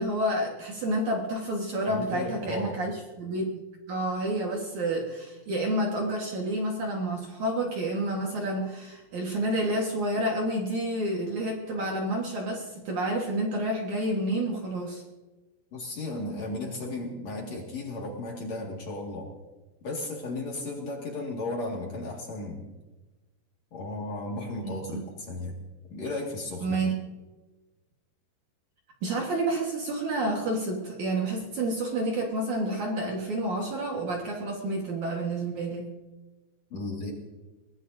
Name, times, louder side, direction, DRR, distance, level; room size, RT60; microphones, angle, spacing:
voice 1, 0.0-15.0 24.6-25.1 26.6-26.9 29.0-35.9, right 1 dB, 60° right, -1 dB, 2.1 m, -29 dB
voice 2, 1.9-2.8 15.7-19.3 19.8-22.7 23.7-25.6 25.9-26.8 36.7-37.1, left 2 dB, 45° left, -1 dB, 2.4 m, -35 dB
22.5 x 19.5 x 2.7 m, 1.2 s
omnidirectional pair, 5.7 m